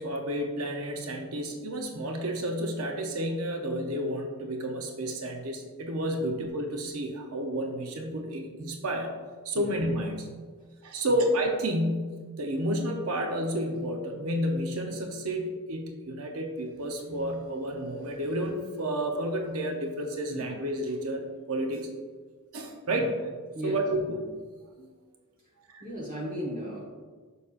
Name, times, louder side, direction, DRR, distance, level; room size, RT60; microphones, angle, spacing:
voice 1, 0.0-9.1 9.4-10.3 10.8-21.9 22.5-23.1 23.6-24.2 24.8-24.9 25.7-25.8, right 1 dB, 75° right, 3 dB, 0.8 m, -31 dB
voice 2, 25.8-26.8, equal, 40° right, -5 dB, 1.2 m, -36 dB
6.8 x 6.4 x 2.5 m, 1.5 s
head